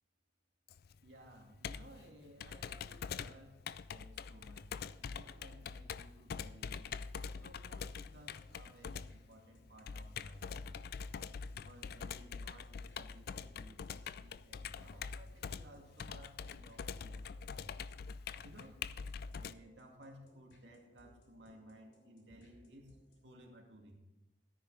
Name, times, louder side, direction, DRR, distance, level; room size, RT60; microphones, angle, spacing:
Computer keyboard, 0.7-19.5, left 6 dB, 55° left, 0.3 m, -45 dB
voice 1, 1.0-3.6 3.9-4.7 5.0-6.9 7.4-10.8 11.5-17.7 18.4-18.8 19.4-23.0 23.2-24.0, right 1 dB, 70° right, 1 dB, 2.3 m, -58 dB
sound 1, 8.1-23.4, equal, 70° left, 3.0 m, -66 dB
13.5 x 10.0 x 4.1 m, 0.96 s
head